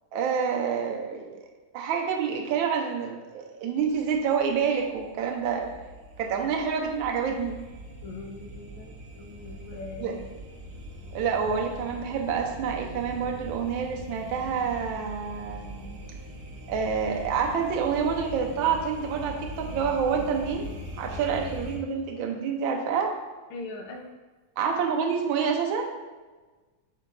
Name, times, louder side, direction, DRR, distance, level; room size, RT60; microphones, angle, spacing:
voice 1, 0.1-1.4 1.7-5.7 6.2-7.6 10.0-10.2 11.1-16.0 16.7-20.7 21.0-23.1 24.6-25.9, right 6 dB, 75° right, 2 dB, 1.3 m, -28 dB
sound 1, 3.9-21.8, equal, 90° right, 1.7 m, -41 dB
voice 2, 8.0-10.2 23.5-24.1 24.6-24.7, left 3 dB, 80° left, 2 dB, 1.5 m, -41 dB
5.8 x 3.8 x 2.2 m, 1.3 s
omnidirectional pair, 2.3 m